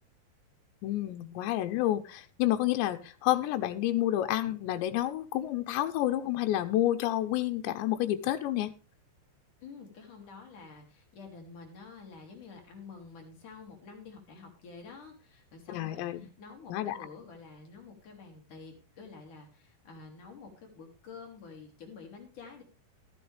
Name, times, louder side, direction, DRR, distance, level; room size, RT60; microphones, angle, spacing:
voice 1, 0.8-8.7 15.7-16.3 16.7-17.0, left 13 dB, 90° left, 7 dB, 3.1 m, -29 dB
voice 2, 9.6-22.6, left 4 dB, 50° left, 2 dB, 3.8 m, -49 dB
14.0 x 12.5 x 3.4 m, 0.31 s
omnidirectional pair, 4.9 m